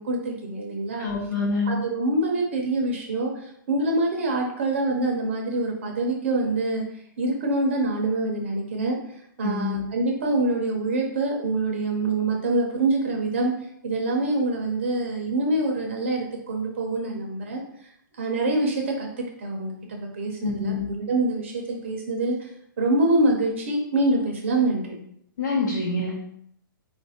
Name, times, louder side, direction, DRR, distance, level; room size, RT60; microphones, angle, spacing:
voice 1, 0.0-1.1 1.7-19.1 19.4-22.5 22.8-24.9, right 2 dB, 35° right, 1 dB, 0.6 m, -25 dB
voice 2, 1.0-1.7 9.4-9.8 20.4-20.9 25.4-26.2, left 3 dB, 65° left, -3 dB, 1.0 m, -26 dB
4.6 x 2.4 x 4.2 m, 0.71 s
hypercardioid pair, 180°, 11 cm